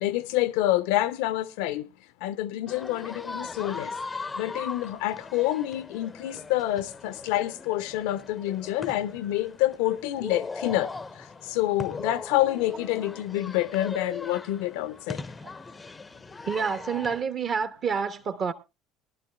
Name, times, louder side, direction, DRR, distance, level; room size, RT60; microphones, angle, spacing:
voice 1, 0.0-1.8 2.2-3.9 4.4-10.9 11.6-15.2, left 15 dB, 60° left, 0.6 m, -27 dB
sound 1, 2.7-17.2, left 3 dB, 15° left, 0.6 m, -39 dB
voice 2, 16.5-18.5, right 6 dB, 40° right, 1.2 m, -28 dB
21.5 x 12.0 x 2.3 m
figure-of-eight pair, 65°, 0 cm